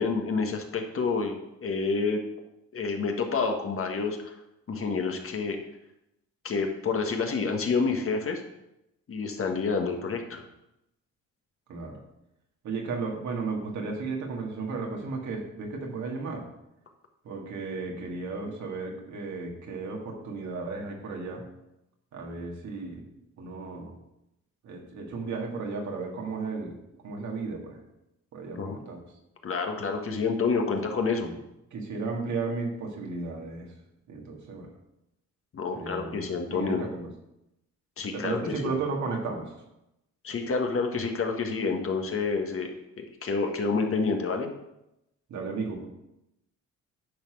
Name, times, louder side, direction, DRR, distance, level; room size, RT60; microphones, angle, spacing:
voice 1, 0.0-2.2 2.7-4.4 4.7-5.6 6.4-8.4 9.1-10.4 28.6-28.8 29.4-31.3 35.5-36.8 38.0-38.7 40.2-44.5, left 4 dB, 45° left, 4 dB, 1.5 m, -28 dB
voice 2, 12.6-16.5 17.2-21.4 22.1-23.1 23.4-24.0 24.6-26.8 27.0-27.8 28.3-29.0 31.2-31.4 31.7-33.7 34.1-34.7 35.7-37.1 38.1-39.5 45.3-45.9, right 4 dB, 70° right, 0 dB, 2.2 m, -34 dB
10.5 x 4.2 x 6.3 m, 0.87 s
cardioid pair, 90°, 30 cm